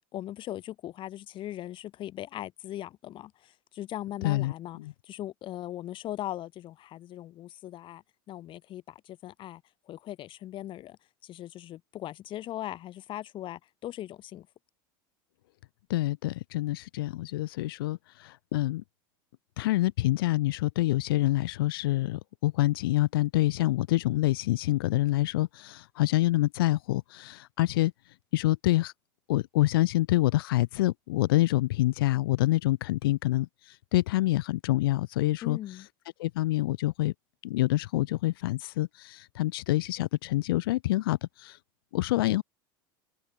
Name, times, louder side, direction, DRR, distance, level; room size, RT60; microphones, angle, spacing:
voice 1, 0.1-9.6 9.9-14.5 35.4-35.9, left 13 dB, 45° left, 5.4 m, -39 dB
voice 2, 15.9-18.8 19.6-27.9 28.3-28.9 29.3-35.6 36.2-37.1 37.4-41.6 41.9-42.4, left 17 dB, 80° left, 2.7 m, -26 dB
supercardioid pair, 110°, 12 cm